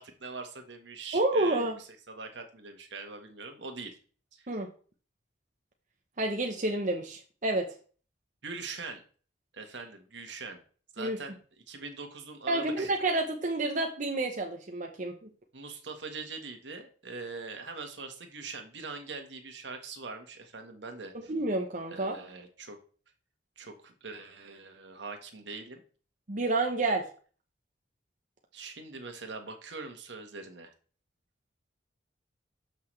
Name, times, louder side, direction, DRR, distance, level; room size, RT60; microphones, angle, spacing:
voice 1, 0.0-1.7 2.1-4.0 4.3-4.4 8.4-9.0 9.5-10.6 10.9-11.4 11.7-12.9 15.5-21.3 21.9-22.8 23.6-25.8 28.5-30.7, right 4 dB, 75° right, 5 dB, 1.6 m, -42 dB
voice 2, 1.1-1.8 4.5-4.7 6.2-7.7 11.0-11.2 12.5-15.3 21.1-22.2 26.3-27.1, right 2 dB, 45° right, 2 dB, 1.0 m, -29 dB
13.5 x 5.8 x 3.4 m, 0.41 s
head